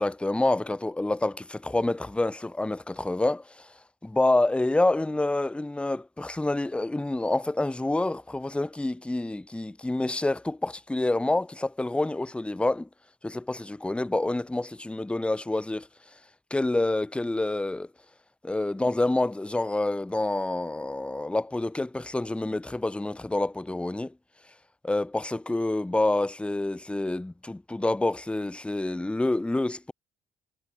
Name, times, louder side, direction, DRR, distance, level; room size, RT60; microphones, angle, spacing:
voice 1, 0.0-12.9 13.2-16.2 16.5-17.9 18.4-24.1 24.8-29.9, left 2 dB, 5° left, 0.4 m, -27 dB
cardioid pair, 90°, 20 cm